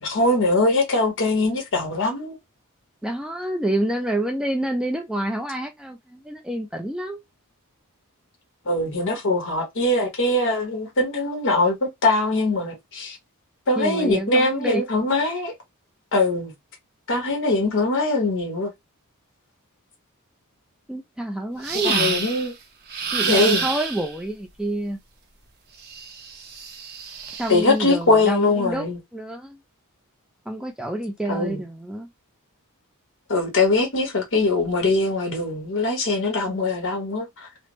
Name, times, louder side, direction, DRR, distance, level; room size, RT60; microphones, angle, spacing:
voice 1, 0.0-2.3 8.6-13.2 13.7-15.5 16.1-16.5 17.1-18.7 21.8-22.5 23.3-23.6 27.5-29.0 31.3-31.6 33.3-37.5, left 2 dB, 60° left, 1.2 m, -22 dB
voice 2, 3.0-7.2 13.8-14.8 20.9-22.3 23.1-25.0 27.4-29.6 30.5-32.1, right 1 dB, 5° right, 0.3 m, -28 dB
sound 1, 21.6-22.5 22.9-24.1 25.8-27.7, right 5 dB, 45° right, 0.7 m, -28 dB
3.2 x 2.0 x 3.0 m
head